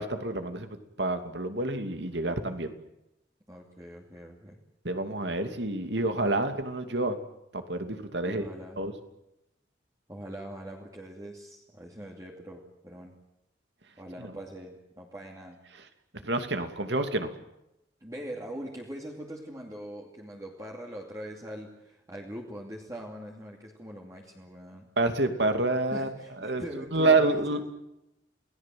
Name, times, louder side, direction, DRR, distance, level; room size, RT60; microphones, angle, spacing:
voice 1, 0.0-2.7 4.8-7.2 7.5-8.4 8.8-8.9 14.2-14.3 16.2-17.3 25.0-26.1 26.4-26.6 26.9-27.6, right 2 dB, 65° right, 7 dB, 2.7 m, -28 dB
voice 2, 3.5-4.6 8.2-8.8 10.1-13.2 14.0-15.6 18.0-24.9 25.9-27.6, equal, 20° right, -1 dB, 2.6 m, -42 dB
28.5 x 18.5 x 7.8 m, 0.88 s
head